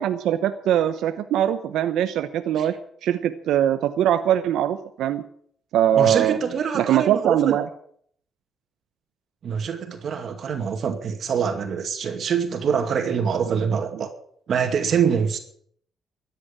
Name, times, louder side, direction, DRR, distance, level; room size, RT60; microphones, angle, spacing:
voice 1, 0.0-2.7 3.0-5.2 5.7-6.4 6.7-7.7 13.5-13.6, right 11 dB, 85° right, 9 dB, 0.9 m, -22 dB
voice 2, 5.9-7.6 9.4-14.1 14.5-15.4, right 7 dB, 60° right, 6 dB, 2.3 m, -24 dB
13.5 x 9.5 x 8.9 m, 0.63 s
cardioid pair, 90°, 0 cm